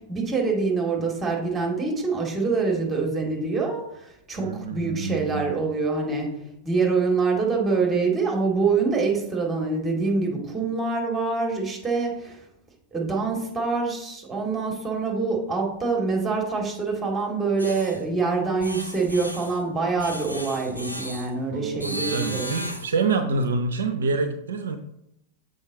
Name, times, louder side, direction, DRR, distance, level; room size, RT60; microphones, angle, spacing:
voice 1, 0.0-6.3 6.6-12.4 12.9-22.5, right 4 dB, 15° right, 0 dB, 2.2 m, -25 dB
voice 2, 4.4-5.5 21.5-24.8, right 4 dB, 65° right, 8 dB, 0.5 m, -27 dB
sound 1, 17.6-18.0 18.6-19.6 20.0-21.3 21.8-23.0, equal, 90° left, 0.7 m, -35 dB
7.1 x 5.3 x 3.9 m, 0.80 s
figure-of-eight pair, 90°, 0 cm